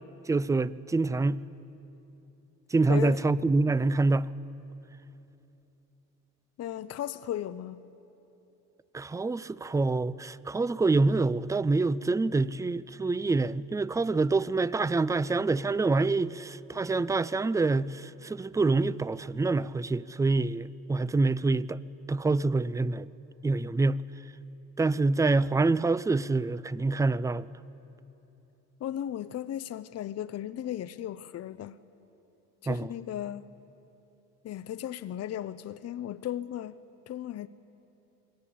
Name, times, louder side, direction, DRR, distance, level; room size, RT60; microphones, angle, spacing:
voice 1, 0.3-1.4 2.7-4.3 8.9-21.8 22.1-23.1 23.4-24.0 24.8-27.5 32.7-32.9, right 3 dB, 10° right, 0.4 m, -26 dB
voice 2, 2.9-3.2 6.6-7.8 28.8-31.8 32.6-33.5 34.4-36.8 37.1-37.5, left 11 dB, 55° left, 0.6 m, -36 dB
21.0 x 18.0 x 8.5 m
cardioid pair, 90°, 30 cm